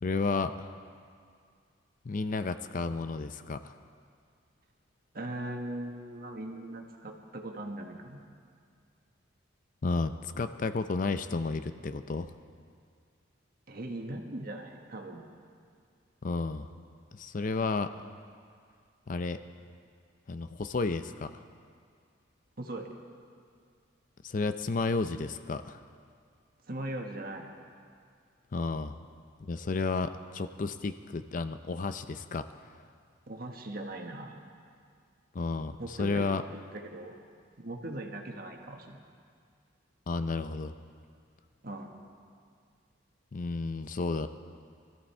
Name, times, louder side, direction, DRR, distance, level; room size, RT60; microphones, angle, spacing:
voice 1, 0.0-0.7 2.0-3.7 9.8-12.3 16.2-16.7 17.1-17.9 19.1-19.4 20.3-21.3 24.2-25.8 28.5-29.0 29.4-32.5 35.3-36.4 40.1-40.7 43.3-44.3, left 3 dB, 40° left, 10 dB, 0.5 m, -32 dB
voice 2, 5.1-8.2 13.7-15.3 22.6-22.9 26.7-27.5 33.3-34.4 35.8-37.1 37.6-39.0 41.6-41.9, right 1 dB, 50° right, 2 dB, 1.4 m, -39 dB
22.0 x 13.5 x 4.4 m, 2.2 s
head